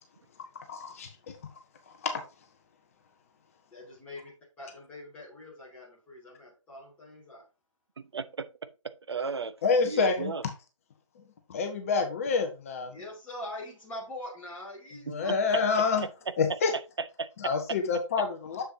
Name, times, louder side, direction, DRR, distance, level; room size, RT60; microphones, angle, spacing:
voice 1, 0.7-1.4 2.0-2.2 9.6-10.3 11.2-11.3 11.5-13.0 15.1-16.1 16.4-16.7 17.4-18.6, left 5 dB, 25° left, 1.0 m, -27 dB
voice 2, 3.7-7.5 12.9-15.3 15.9-16.0, left 1 dB, 10° left, 2.4 m, -43 dB
voice 3, 8.0-9.5 9.8-10.4 15.1-15.2 17.0-17.3, right 4 dB, 55° right, 0.8 m, -35 dB
7.2 x 6.9 x 2.7 m
figure-of-eight pair, 145°, 17 cm